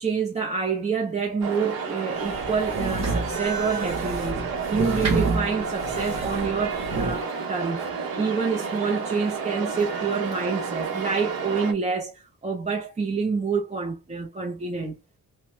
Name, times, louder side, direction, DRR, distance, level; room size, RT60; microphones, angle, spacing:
voice 1, 0.0-4.4 4.7-7.8 8.2-15.0, right 5 dB, 20° right, 0.5 m, -27 dB
sound 1, 1.4-11.7, right 5 dB, 80° right, 0.8 m, -31 dB
sound 2, 2.2-7.2, right 3 dB, 50° right, 1.1 m, -29 dB
2.9 x 2.1 x 3.1 m
cardioid pair, 85°, 35 cm